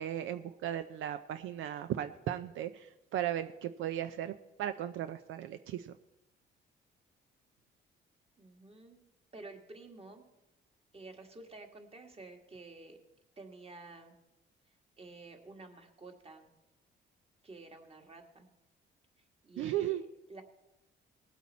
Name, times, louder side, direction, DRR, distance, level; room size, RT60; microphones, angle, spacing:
voice 1, 0.0-5.9 19.6-20.0, right 11 dB, 80° right, 10 dB, 0.5 m, -36 dB
voice 2, 8.4-9.0 9.3-10.3 10.9-13.0 13.4-14.2 15.0-16.5 17.4-18.5 19.4-20.0 20.3-20.4, right 3 dB, 30° right, 3 dB, 1.9 m, -51 dB
19.0 x 8.2 x 4.2 m, 0.96 s
cardioid pair, 90°, 20 cm